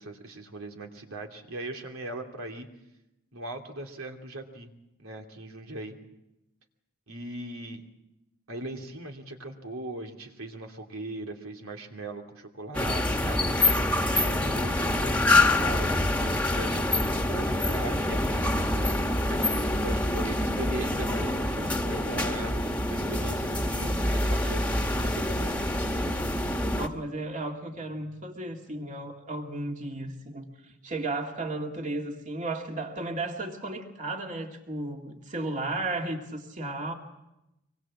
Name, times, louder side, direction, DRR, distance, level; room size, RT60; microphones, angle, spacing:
voice 1, 0.0-2.7 3.3-4.7 5.0-6.0 7.1-7.8 8.5-13.5 14.1-15.3 15.6-21.4 21.8-22.5 22.8-25.5, right 2 dB, 80° right, 3 dB, 2.9 m, -39 dB
sound 1, 12.7-26.9, left 1 dB, 5° left, 1.5 m, -26 dB
voice 2, 14.4-14.7 21.2-21.9 26.7-30.5 30.8-36.9, right 2 dB, 35° right, 2 dB, 2.4 m, -34 dB
24.5 x 21.5 x 7.4 m, 0.91 s
head